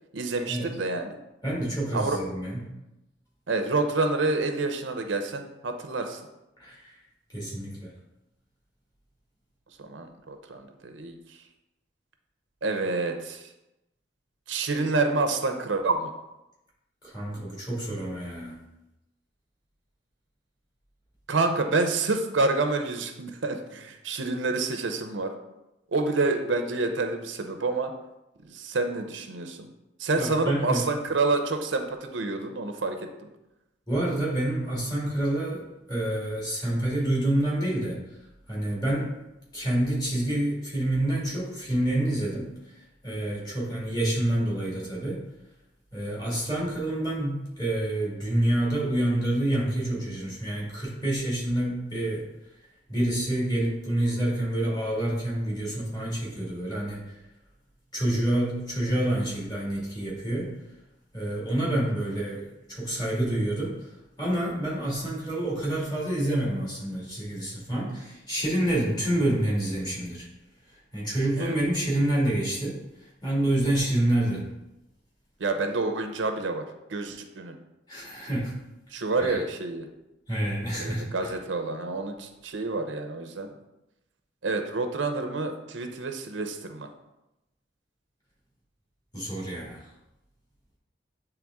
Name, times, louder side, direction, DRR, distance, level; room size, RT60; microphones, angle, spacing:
voice 1, 0.1-1.2 1.9-2.2 3.5-6.2 9.8-11.1 12.6-13.5 14.5-16.1 21.3-25.3 25.9-27.9 28.4-29.7 30.0-33.1 71.4-71.6 75.4-76.6 76.9-77.5 78.9-79.9 80.8-83.5 84.4-86.9, right 3 dB, 90° right, 6 dB, 0.7 m, -28 dB
voice 2, 1.4-2.7 6.6-6.9 7.3-7.9 17.0-18.6 30.1-30.9 33.9-35.6 35.9-38.0 38.5-39.1 39.5-45.2 45.9-52.3 52.9-57.2 57.9-60.5 61.1-63.9 64.2-70.3 70.9-72.8 73.2-74.5 77.9-78.6 79.2-79.4 80.3-81.4 89.1-89.8, right 1 dB, 20° left, -5 dB, 2.0 m, -28 dB
8.7 x 3.3 x 3.5 m, 0.94 s
head